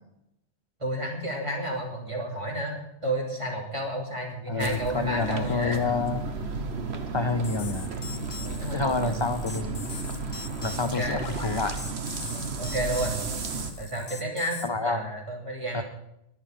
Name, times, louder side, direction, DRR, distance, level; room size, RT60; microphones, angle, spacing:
voice 1, 0.8-2.7 3.0-5.8 8.6-9.1 10.8-11.3 12.6-13.2 13.8-15.8, right 1 dB, 30° right, -1 dB, 3.2 m, -31 dB
voice 2, 4.5-6.2 7.1-7.9 8.7-9.9 10.6-11.8 13.5-13.6 14.6-15.1 15.7-15.8, left 4 dB, 35° left, 9 dB, 0.5 m, -28 dB
sound 1, 4.6-13.7, right 4 dB, 75° right, 1.4 m, -33 dB
sound 2, 7.4-14.7, left 4 dB, 50° left, 1.5 m, -41 dB
21.5 x 7.4 x 5.1 m, 0.82 s
omnidirectional pair, 1.1 m